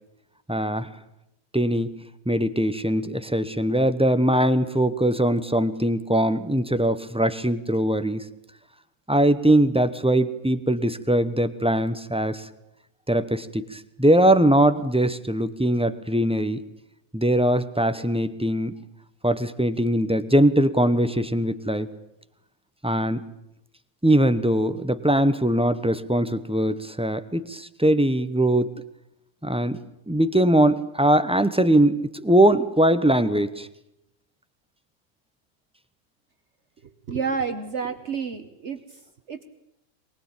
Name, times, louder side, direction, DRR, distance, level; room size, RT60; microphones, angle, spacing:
voice 1, 0.5-0.9 1.5-2.0 2.3-8.3 9.1-12.5 13.1-16.6 17.1-18.8 19.2-21.9 22.8-23.3 24.0-28.7 29.4-29.8 30.1-33.7, right 1 dB, 5° right, 11 dB, 0.8 m, -21 dB
voice 2, 36.8-38.8 39.3-39.4, right 5 dB, 55° right, 8 dB, 1.4 m, -30 dB
23.5 x 20.0 x 8.9 m, 0.84 s
omnidirectional pair, 1.5 m